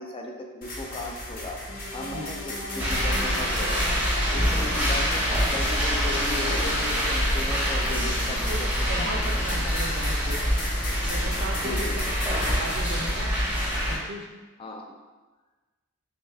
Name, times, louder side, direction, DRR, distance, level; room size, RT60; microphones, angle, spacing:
voice 1, 0.0-1.6 1.9-3.8 4.3-9.2 9.6-9.8 11.6-12.0 14.6-14.9, left 2 dB, 25° left, 2 dB, 0.4 m, -37 dB
sound 1, 0.6-13.1, left 1 dB, 40° left, 0.9 m, -36 dB
sound 2, 1.7-8.8, left 1 dB, 85° left, 0.7 m, -39 dB
voice 2, 2.0-2.4 8.2-10.5 11.0-13.3 13.9-14.3, right 1 dB, 60° right, 3 dB, 0.5 m, -37 dB
sound 3, 2.8-14.0, equal, 5° right, 0.7 m, -26 dB
3.5 x 3.3 x 3.3 m, 1.3 s
head